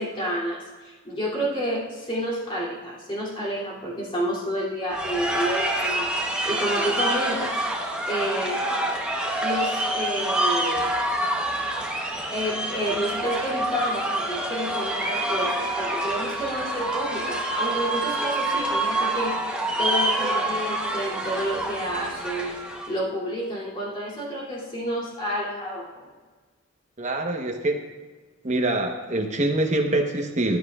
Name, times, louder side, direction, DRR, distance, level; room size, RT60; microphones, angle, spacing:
voice 1, 0.0-7.6 8.1-8.6 9.4-10.9 12.3-22.6 22.9-26.1, equal, 25° left, -5 dB, 2.8 m, -29 dB
sound 1, 4.9-22.9, right 1 dB, 5° right, 1.0 m, -27 dB
voice 2, 27.0-27.8 28.4-30.6, right 1 dB, 35° right, 2 dB, 1.1 m, -24 dB
15.0 x 9.9 x 2.4 m, 1.4 s
head